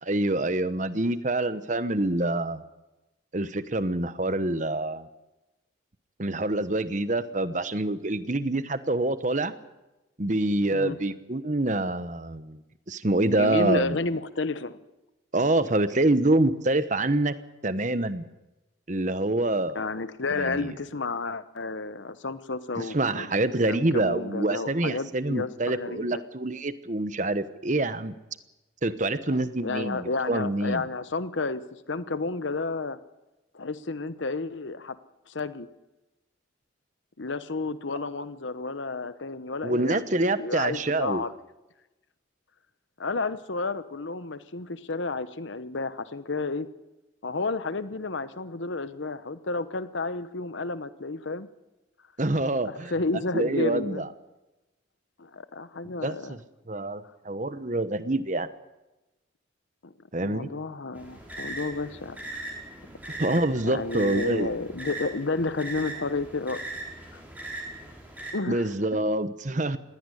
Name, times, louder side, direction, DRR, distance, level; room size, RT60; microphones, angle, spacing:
voice 1, 0.0-2.6 3.3-5.1 6.2-9.5 10.2-12.6 12.9-14.0 15.3-17.3 17.6-18.3 18.9-19.8 20.3-20.7 22.8-28.2 28.8-30.8 39.6-41.2 52.2-52.9 53.3-54.1 56.0-56.4 56.7-58.5 60.1-60.5 63.1-64.5 68.5-69.8, right 2 dB, 40° right, 12 dB, 1.1 m, -26 dB
voice 2, 13.2-14.8 19.7-23.3 23.6-26.1 29.3-33.0 33.5-35.0 35.3-35.7 37.2-41.3 43.0-46.7 47.2-51.5 52.6-54.1 55.2-56.4 59.8-59.9 60.2-62.2 63.6-66.6 67.1-67.2 68.3-68.7, left 3 dB, 70° left, 13 dB, 1.0 m, -31 dB
sound 1, 61.0-68.3, right 2 dB, 10° right, 5.1 m, -39 dB
20.0 x 17.0 x 9.9 m, 1.0 s
head